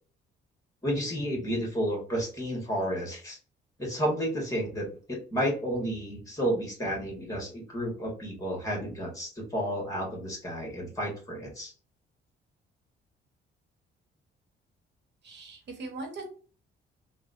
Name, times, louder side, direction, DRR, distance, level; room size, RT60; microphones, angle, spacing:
voice 1, 0.8-3.4 3.8-4.9 5.3-11.7, equal, 15° left, -1 dB, 1.6 m, -31 dB
voice 2, 15.2-16.3, right 2 dB, 60° right, 2 dB, 1.1 m, -40 dB
3.5 x 2.3 x 2.5 m, 0.40 s
cardioid pair, 90°, 20 cm